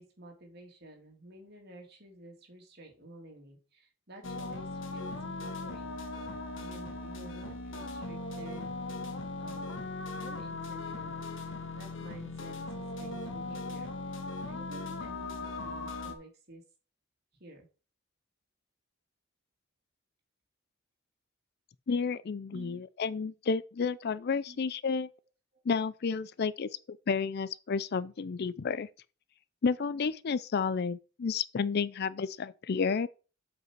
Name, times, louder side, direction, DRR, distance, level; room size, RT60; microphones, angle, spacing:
voice 1, 0.0-6.0 6.5-9.9 10.1-13.9 14.5-16.6 17.4-17.7 22.5-22.8 24.5-24.6 25.5-25.6, right 1 dB, 55° right, 2.7 m, -51 dB
sound 1, 4.2-16.2, left 2 dB, 70° left, 1.4 m, -39 dB
voice 2, 21.9-25.1 25.7-28.9 29.6-33.1, left 5 dB, 55° left, 0.4 m, -31 dB
7.9 x 5.4 x 4.6 m
head